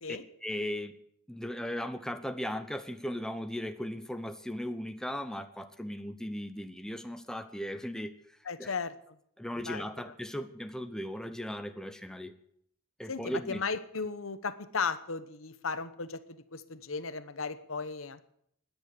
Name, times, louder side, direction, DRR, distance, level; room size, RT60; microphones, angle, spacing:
voice 1, 0.4-0.9 1.3-8.1 8.6-8.7 9.4-12.3 13.0-13.6, equal, 5° left, 8 dB, 0.8 m, -37 dB
voice 2, 8.5-8.9 9.6-9.8 13.1-18.2, left 5 dB, 80° left, 13 dB, 1.0 m, -36 dB
17.5 x 10.5 x 6.8 m, 0.69 s
head